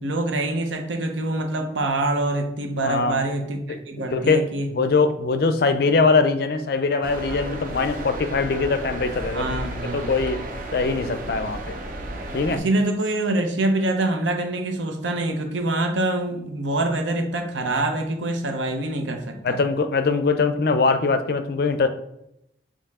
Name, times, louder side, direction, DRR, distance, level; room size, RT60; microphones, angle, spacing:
voice 1, 0.0-4.7 9.3-10.1 12.5-19.6, right 2 dB, 85° right, 5 dB, 0.7 m, -25 dB
voice 2, 2.8-3.2 3.7-3.8 4.1-9.5 9.9-10.4 10.7-11.7 12.3-12.6 19.4-21.9, left 4 dB, 55° left, 9 dB, 0.4 m, -22 dB
sound 1, 7.0-12.6, right 1 dB, 45° right, 0.6 m, -33 dB
4.6 x 2.9 x 3.5 m, 0.80 s
head